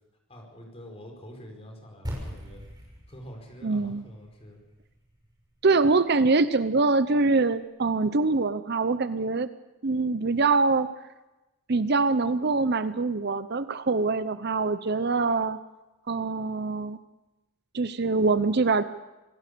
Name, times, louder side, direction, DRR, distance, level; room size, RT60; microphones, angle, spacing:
voice 1, 0.3-2.6 3.1-4.6, equal, 30° left, 2 dB, 5.1 m, -46 dB
sound 1, 2.0-6.6, equal, 20° right, 6.2 m, -42 dB
voice 2, 3.6-4.0 5.6-9.5 9.8-10.9 11.7-15.6 16.1-17.0 17.7-18.8, right 3 dB, 50° right, 13 dB, 0.7 m, -24 dB
26.5 x 17.0 x 6.9 m, 1.1 s
head